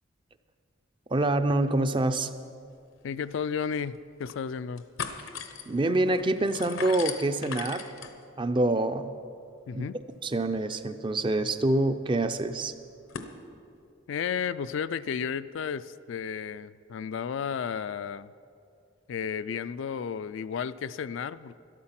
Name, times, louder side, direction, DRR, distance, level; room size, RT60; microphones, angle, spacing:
voice 1, 1.1-2.3 5.7-7.9 8.4-9.1 9.7-9.9 10.2-12.7, right 2 dB, 25° right, 10 dB, 0.4 m, -26 dB
sound 1, 3.0-3.1 3.3-3.4 3.9-4.4 4.7-13.3, left 6 dB, 85° left, 0.9 m, -42 dB
voice 2, 3.0-4.8 9.7-10.0 14.1-18.3 19.1-21.6, left 7 dB, 70° left, 14 dB, 0.3 m, -33 dB
13.0 x 12.0 x 5.8 m, 2.4 s
head